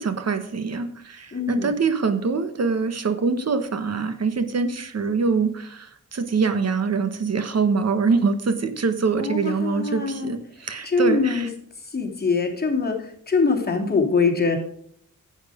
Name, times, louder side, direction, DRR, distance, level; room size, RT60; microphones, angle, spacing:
voice 1, 0.0-11.5, right 4 dB, 50° right, 9 dB, 1.2 m, -24 dB
voice 2, 1.3-1.7 9.2-10.3 10.8-11.5 11.8-14.6, left 4 dB, 30° left, 0 dB, 3.0 m, -23 dB
10.5 x 9.2 x 5.0 m, 0.64 s
wide cardioid pair, 120°, 32 cm